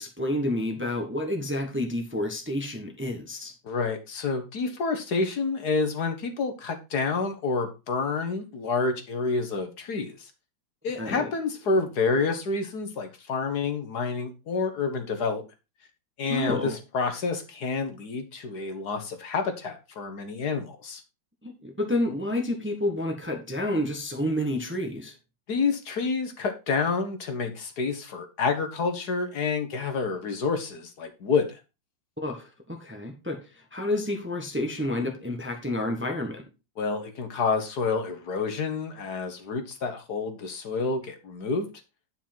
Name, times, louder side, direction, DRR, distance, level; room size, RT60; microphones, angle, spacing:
voice 1, 0.0-3.5 11.0-11.3 16.3-16.8 21.4-25.1 32.2-36.4, left 1 dB, 5° right, 3 dB, 1.2 m, -29 dB
voice 2, 3.6-10.3 10.8-15.4 16.2-21.0 25.5-31.6 36.8-41.7, left 4 dB, 60° left, 6 dB, 1.7 m, -28 dB
10.0 x 5.7 x 4.4 m, 0.28 s
omnidirectional pair, 2.0 m